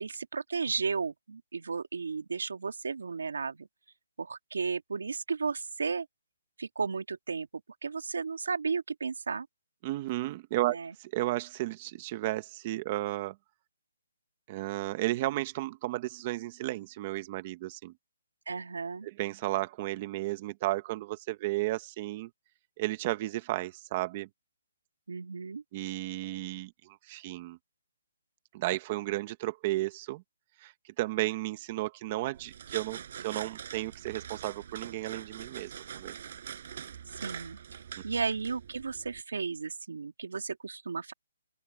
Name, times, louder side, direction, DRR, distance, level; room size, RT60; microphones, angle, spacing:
voice 1, 0.0-3.7 4.2-6.1 6.6-7.5 7.8-9.5 10.7-10.9 18.5-19.1 25.1-25.6 37.1-41.1, right 5 dB, 85° right, 1.9 m, -34 dB
voice 2, 9.8-13.3 14.5-17.9 19.0-22.3 22.8-24.3 25.7-27.6 28.5-30.2 30.6-36.1, right 17 dB, 25° right, 1.3 m, -33 dB
sound 1, 32.3-39.2, right 8 dB, 40° right, 7.5 m, -44 dB
open air
hypercardioid pair, 175°, 0 cm